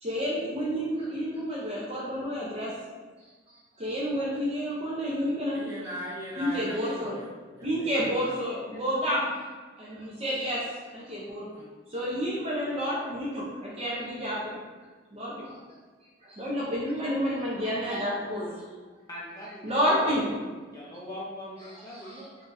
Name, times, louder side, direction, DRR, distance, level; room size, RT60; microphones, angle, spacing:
voice 1, 0.0-2.7 3.5-5.6 6.4-7.2 7.6-9.3 9.8-11.5 11.9-14.6 15.1-15.6 16.2-18.7 19.6-20.3 21.7-22.5, equal, 35° right, -6 dB, 0.6 m, -30 dB
voice 2, 5.5-8.2 11.5-11.7, equal, 15° right, -9 dB, 1.2 m, -40 dB
voice 3, 19.1-20.3 20.7-22.3, left 1 dB, 20° left, -6 dB, 0.6 m, -42 dB
3.9 x 3.4 x 2.6 m, 1.4 s
head